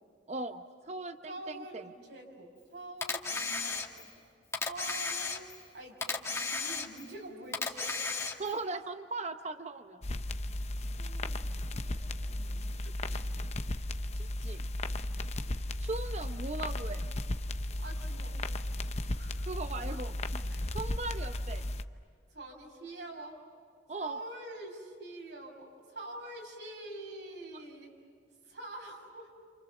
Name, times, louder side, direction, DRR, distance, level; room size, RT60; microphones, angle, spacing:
voice 1, 0.3-1.8 8.4-10.0 14.1-14.7 15.8-17.1 19.4-20.1 20.7-21.6 23.9-24.2, right 3 dB, 40° right, 8 dB, 0.8 m, -38 dB
voice 2, 1.3-4.1 4.7-5.5 5.7-8.6 11.0-13.2 17.8-18.4 19.1-19.4 20.5-20.8 22.3-23.4 23.9-28.0 28.4-29.3, right 2 dB, 75° right, 0 dB, 6.3 m, -46 dB
Camera, 3.0-4.2 4.5-5.7 6.0-7.2 7.5-8.6, left 4 dB, 15° left, 2.0 m, -34 dB
sound 1, 10.0-21.8, left 1 dB, 40° left, 0.8 m, -35 dB
29.0 x 28.0 x 7.1 m, 2.2 s
head